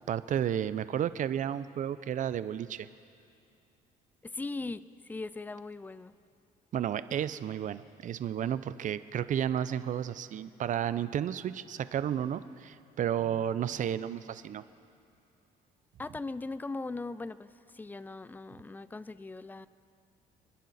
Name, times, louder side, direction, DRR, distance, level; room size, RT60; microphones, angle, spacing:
voice 1, 0.0-2.9 6.7-14.6, right 9 dB, 50° right, 0.6 m, -32 dB
voice 2, 4.2-6.1 16.0-19.7, left 3 dB, 10° left, 0.4 m, -39 dB
29.0 x 10.5 x 4.2 m
cardioid pair, 110°, 17 cm